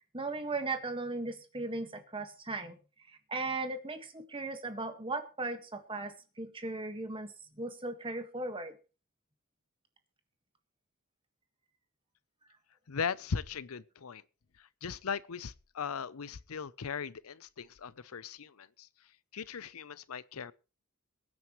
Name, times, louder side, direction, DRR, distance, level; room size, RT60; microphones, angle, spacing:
voice 1, 0.1-2.8 3.3-8.7, right 3 dB, 25° right, 1.6 m, -37 dB
voice 2, 12.9-14.2 14.6-18.9 19.3-20.5, left 6 dB, 85° left, 0.7 m, -38 dB
22.5 x 9.2 x 3.1 m
head